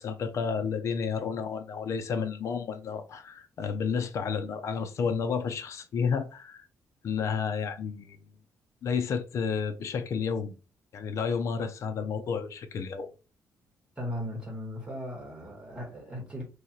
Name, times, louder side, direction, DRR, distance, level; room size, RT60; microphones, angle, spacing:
voice 1, 0.0-6.6 7.0-8.2 8.8-10.5 10.9-13.1, left 6 dB, 55° left, 0.6 m, -31 dB
voice 2, 13.9-16.4, equal, 15° right, 1.7 m, -37 dB
3.1 x 2.8 x 3.9 m
cardioid pair, 160°, 6 cm